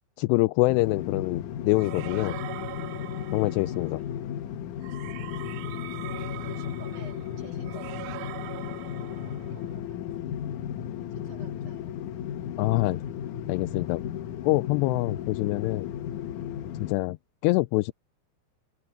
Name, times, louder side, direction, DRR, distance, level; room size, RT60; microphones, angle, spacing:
voice 1, 0.2-2.4 3.3-4.0 12.6-13.0 13.5-14.1 14.4-15.9 16.8-17.2 17.4-17.9, left 21 dB, 85° left, 2.7 m, -25 dB
sound 1, 0.7-16.9, left 9 dB, 65° left, 2.1 m, -35 dB
sound 2, 1.8-4.0 4.8-9.7, right 15 dB, 80° right, 2.2 m, -42 dB
voice 2, 3.4-4.2 6.4-9.8 11.1-12.0, right 7 dB, 45° right, 4.9 m, -52 dB
open air
omnidirectional pair, 4.9 m